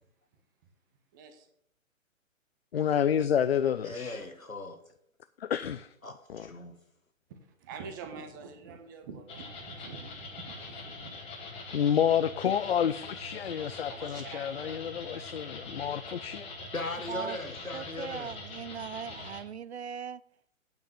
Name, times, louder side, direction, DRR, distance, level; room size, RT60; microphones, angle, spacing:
voice 1, 1.1-1.5 7.3-11.2 13.9-15.4, right 5 dB, 15° right, 7 dB, 0.7 m, -46 dB
voice 2, 2.7-4.2 5.4-5.9 6.3-6.5 11.7-16.5, left 9 dB, 50° left, 12 dB, 0.4 m, -29 dB
voice 3, 3.8-4.8 6.0-6.8 16.7-18.3, left 2 dB, 85° left, 6 dB, 1.7 m, -38 dB
sound 1, 9.3-19.4, left 3 dB, 15° left, 1.5 m, -43 dB
voice 4, 17.7-20.2, right 7 dB, 55° right, 18 dB, 0.5 m, -39 dB
9.0 x 5.6 x 7.1 m, 0.67 s
figure-of-eight pair, 130°, 40 cm